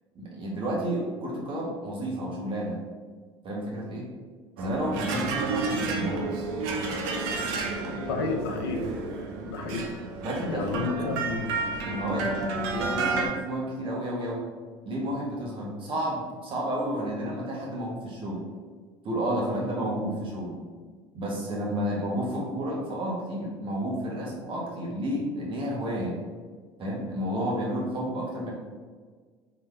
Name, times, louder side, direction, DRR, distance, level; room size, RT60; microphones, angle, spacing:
voice 1, 0.1-2.8 3.4-4.1 4.6-6.3 10.2-11.2 11.9-12.4 12.7-14.5 14.8-18.4 19.0-20.6 21.1-26.2 26.8-28.5, equal, 45° right, -3 dB, 1.5 m, -31 dB
sound 1, 4.6-13.3, right 3 dB, 75° right, 0.7 m, -31 dB
voice 2, 8.1-8.9 9.5-9.8 10.5-11.7, left 4 dB, 90° left, 3 dB, 0.6 m, -31 dB
4.0 x 3.3 x 3.4 m, 1.5 s
hypercardioid pair, 80°, 13 cm